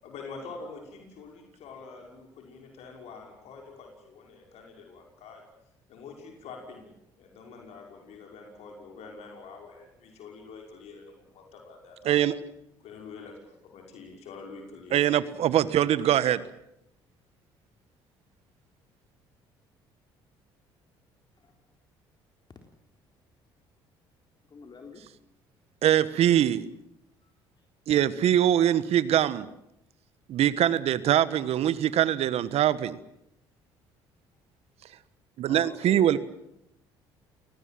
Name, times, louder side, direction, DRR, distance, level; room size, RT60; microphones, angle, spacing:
voice 1, 0.0-5.4 5.9-6.9 7.2-12.2 12.8-15.6, left 4 dB, 70° left, 2 dB, 5.9 m, -46 dB
voice 2, 14.9-16.4 25.8-26.6 27.9-29.5 30.3-33.0 35.4-36.2, right 11 dB, 65° right, 16 dB, 1.4 m, -23 dB
voice 3, 24.5-25.0 27.2-27.3 35.5-36.2, left 4 dB, 40° left, 3 dB, 3.8 m, -44 dB
29.5 x 19.0 x 7.7 m, 0.80 s
hypercardioid pair, 60°, 12 cm